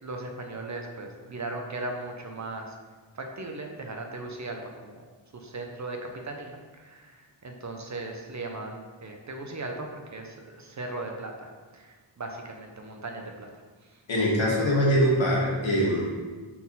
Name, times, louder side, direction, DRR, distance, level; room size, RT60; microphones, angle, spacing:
voice 1, 0.0-2.7 3.1-5.0 5.3-13.5 13.8-14.0, right 2 dB, 40° right, 3 dB, 0.7 m, -38 dB
voice 2, 14.1-16.1, equal, 85° left, -4 dB, 1.8 m, -23 dB
4.3 x 4.2 x 5.3 m, 1.4 s
wide cardioid pair, 135°, 45 cm